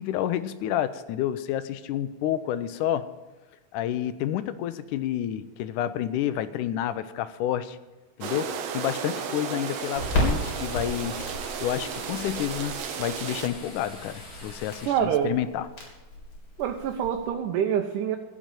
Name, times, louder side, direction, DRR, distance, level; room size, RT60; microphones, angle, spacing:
voice 1, 0.0-3.1 3.7-7.8 8.2-11.1 11.6-15.7, left 11 dB, 90° left, 13 dB, 2.2 m, -29 dB
sound 1, 8.2-13.5, right 7 dB, 65° right, 1.9 m, -34 dB
sound 2, 9.7-14.9, left 1 dB, 25° left, 3.4 m, -45 dB
Crackle, 10.0-17.3, left 1 dB, 50° left, 4.8 m, -34 dB
voice 2, 14.9-15.3 16.6-18.2, right 9 dB, 85° right, 3 dB, 2.4 m, -26 dB
15.5 x 6.3 x 8.9 m, 1.1 s
omnidirectional pair, 3.6 m